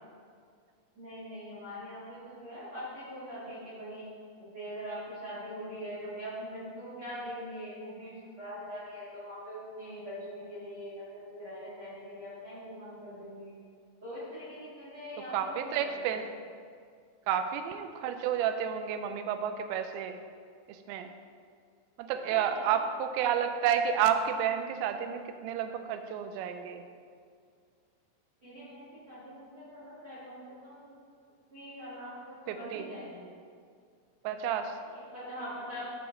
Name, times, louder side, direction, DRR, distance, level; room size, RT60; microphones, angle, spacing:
voice 1, 0.9-4.1 4.4-13.5 14.0-16.0 22.1-22.8 28.4-31.0 31.5-33.3 34.9-35.9, equal, 50° right, -10 dB, 1.6 m, -42 dB
voice 2, 15.3-16.2 17.3-20.2 20.7-21.1 22.0-26.8 32.5-32.9 34.2-34.8, right 8 dB, 85° right, 8 dB, 3.0 m, -30 dB
12.0 x 4.9 x 3.8 m, 2.1 s
omnidirectional pair, 5.9 m